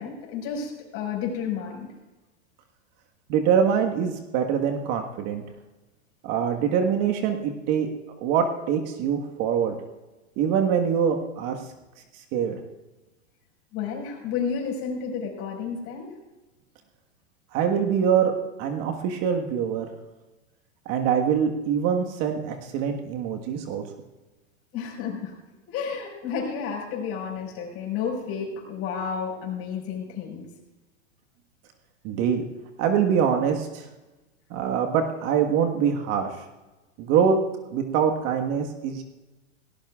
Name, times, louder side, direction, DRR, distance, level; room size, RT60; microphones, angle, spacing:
voice 1, 0.0-1.9 13.7-16.1 24.7-25.3 25.7-30.5, left 6 dB, 40° left, 1 dB, 5.3 m, -31 dB
voice 2, 3.3-5.4 6.2-7.9 8.2-9.8 10.4-11.6 12.3-12.6 17.5-18.3 18.6-19.9 20.8-23.8 32.0-32.5 32.8-33.8 34.5-36.3 37.0-37.4 37.7-39.0, right 7 dB, 45° right, 4 dB, 1.5 m, -24 dB
18.0 x 17.5 x 2.4 m, 1.1 s
hypercardioid pair, 115°, 37 cm